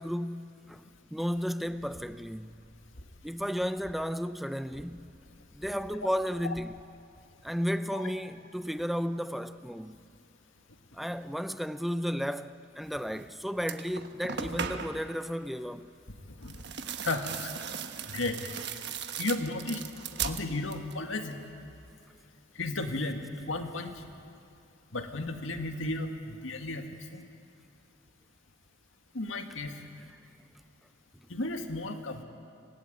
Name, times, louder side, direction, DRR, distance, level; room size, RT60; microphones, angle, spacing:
voice 1, 0.0-2.6 3.2-5.1 5.5-6.8 7.4-10.0 10.9-15.9, equal, ahead, 0.6 m, -33 dB
sound 1, 1.6-3.3 3.6-4.1 4.6-6.8, equal, 65° left, 1.9 m, -55 dB
sound 2, 13.1-13.3 13.6-15.1 16.4-21.0 21.3-21.9, right 7 dB, 60° right, 1.2 m, -38 dB
voice 2, 17.0-17.5 18.1-18.5 19.2-19.8 20.2-21.4 22.6-24.1 24.9-26.9 27.1-27.2 29.1-29.8 31.3-32.2, left 2 dB, 85° left, 2.0 m, -34 dB
25.5 x 19.0 x 9.4 m
head